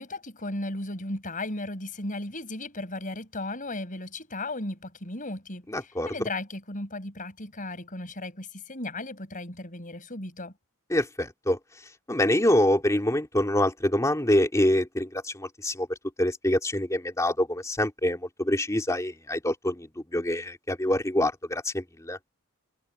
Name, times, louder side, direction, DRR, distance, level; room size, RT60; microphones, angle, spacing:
voice 1, 0.0-10.5, left 2 dB, 35° left, 5.7 m, -35 dB
voice 2, 5.7-6.1 10.9-11.6 12.1-15.9 16.2-22.2, left 1 dB, 15° left, 2.7 m, -25 dB
head